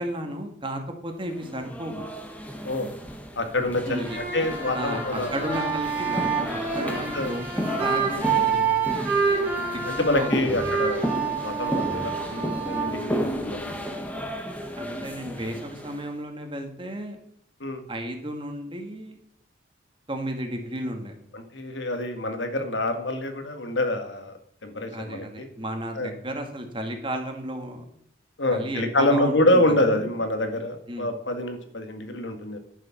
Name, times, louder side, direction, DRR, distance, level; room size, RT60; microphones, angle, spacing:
voice 1, 0.0-2.1 3.8-4.2 4.7-8.9 10.1-10.6 14.7-17.2 17.9-19.2 20.1-21.1 24.9-27.8 28.5-29.6 29.9-30.1 30.9-31.1, right 1 dB, 25° right, 4 dB, 1.8 m, -33 dB
sound 1, 1.3-16.1, equal, 10° left, 1.3 m, -33 dB
voice 2, 3.4-5.6 6.9-7.3 9.4-9.6 9.9-11.1 11.4-13.7 17.6-17.8 21.3-24.3 24.6-25.5 25.9-26.1 28.4-32.6, left 1 dB, 80° left, 6 dB, 1.7 m, -26 dB
sound 2, 4.0-13.8, right 5 dB, 10° right, 2.6 m, -28 dB
11.0 x 7.2 x 5.8 m, 0.69 s
head